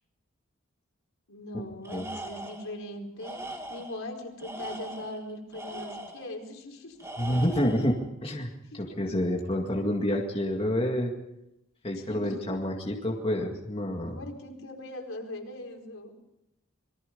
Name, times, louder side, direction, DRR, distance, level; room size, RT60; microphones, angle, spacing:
voice 1, 1.3-7.0 8.9-9.0 11.9-12.6 14.1-16.1, left 1 dB, 65° left, 1 dB, 4.7 m, -40 dB
Tools, 1.8-2.7 3.2-4.0 4.4-6.3 7.0-7.9, right 1 dB, 15° right, 2.4 m, -40 dB
voice 2, 7.2-11.1 11.8-14.2, equal, 25° left, 0 dB, 2.1 m, -28 dB
27.0 x 23.0 x 5.4 m, 0.89 s
head